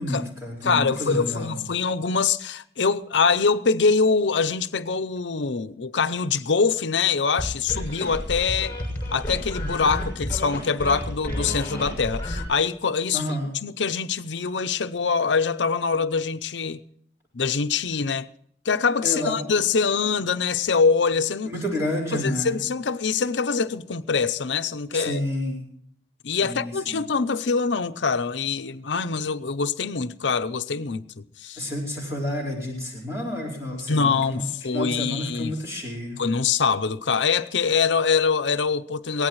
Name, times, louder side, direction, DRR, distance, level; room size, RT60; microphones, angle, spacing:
voice 1, 0.0-1.6 13.1-13.5 19.0-19.5 21.4-22.6 24.9-25.6 26.4-27.0 31.6-36.2, left 1 dB, 15° right, 4.7 m, -30 dB
voice 2, 0.6-8.8 9.1-13.2 13.6-16.8 17.3-18.3 18.6-21.5 22.1-25.2 26.2-31.7 33.9-35.6 36.2-39.3, left 5 dB, 90° left, 0.7 m, -24 dB
sound 1, 7.4-12.4, left 1 dB, 10° left, 6.4 m, -31 dB
23.5 x 18.0 x 3.1 m
head